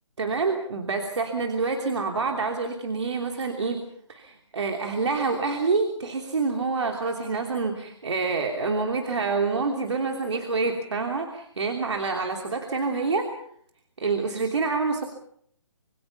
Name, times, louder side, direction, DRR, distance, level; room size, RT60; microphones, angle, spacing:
voice 1, 0.2-3.8 4.1-13.3 14.0-15.0, right 4 dB, 65° right, 3 dB, 3.2 m, -27 dB
27.0 x 23.0 x 5.6 m, 0.68 s
figure-of-eight pair, 140°, 16 cm